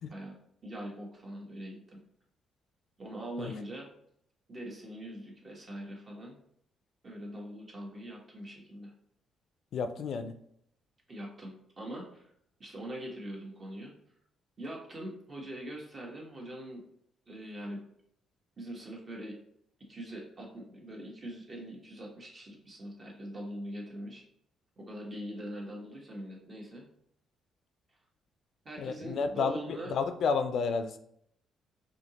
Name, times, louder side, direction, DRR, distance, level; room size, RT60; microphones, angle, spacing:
voice 1, 0.6-2.0 3.0-3.9 4.5-6.4 7.0-8.9 11.1-12.3 12.6-13.9 14.6-16.8 17.3-17.8 18.6-19.4 19.9-24.2 24.8-26.8 28.6-29.9, right 1 dB, 35° right, -1 dB, 1.2 m, -42 dB
voice 2, 9.7-10.3 28.8-31.0, left 5 dB, 65° left, 9 dB, 0.3 m, -31 dB
4.3 x 2.8 x 2.9 m, 0.70 s
cardioid pair, 90°, 0 cm